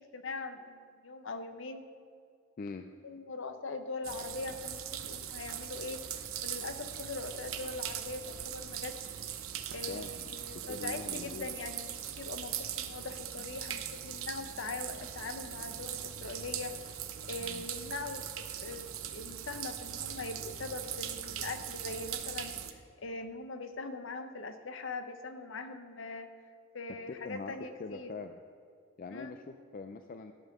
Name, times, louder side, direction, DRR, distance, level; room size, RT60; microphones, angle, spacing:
voice 1, 0.0-1.8 3.0-6.0 6.4-9.1 9.7-16.8 17.3-18.9 19.1-26.3 26.7-28.1 29.1-29.4, left 3 dB, 65° left, 8 dB, 0.8 m, -41 dB
sound 1, 4.0-22.7, right 10 dB, 80° right, 0.7 m, -40 dB
voice 2, 9.9-10.3 10.5-11.5 17.4-17.7 27.1-28.4 29.0-30.3, left 4 dB, 40° left, 7 dB, 0.3 m, -43 dB
13.0 x 5.5 x 6.1 m, 2.4 s
head